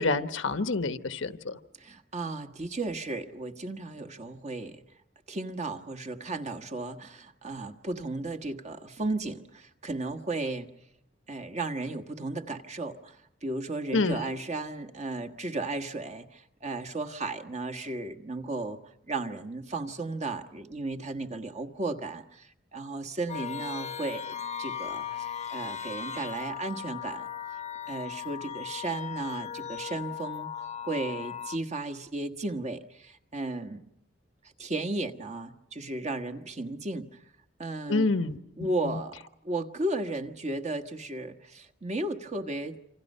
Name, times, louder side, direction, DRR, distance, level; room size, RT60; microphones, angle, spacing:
voice 1, 0.0-1.6 13.9-14.2 37.9-39.0, left 3 dB, 85° left, 10 dB, 1.2 m, -28 dB
voice 2, 1.8-4.8 5.3-10.7 11.3-18.8 19.1-27.3 27.9-33.9 34.6-37.2 37.6-38.1 38.6-39.1 39.4-42.8, right 2 dB, 35° right, 6 dB, 1.4 m, -34 dB
sound 1, 23.3-31.6, left 9 dB, 35° left, 0.9 m, -37 dB
27.5 x 26.5 x 5.5 m, 0.73 s
head